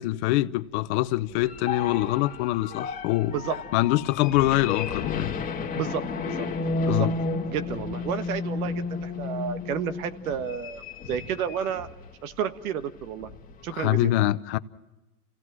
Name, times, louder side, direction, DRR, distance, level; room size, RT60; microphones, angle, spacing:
voice 1, 0.0-3.3 3.7-5.3 6.9-7.1 13.7-14.6, left 16 dB, 45° left, 0.8 m, -24 dB
sound 1, 1.1-12.1 12.5-12.6 13.0-13.7, left 4 dB, 20° left, 1.9 m, -32 dB
voice 2, 5.7-6.5 6.8-7.1 7.5-11.9 12.2-13.3 13.6-14.1, right 8 dB, 70° right, 1.5 m, -31 dB
28.5 x 16.5 x 6.2 m
hypercardioid pair, 130°, 45 cm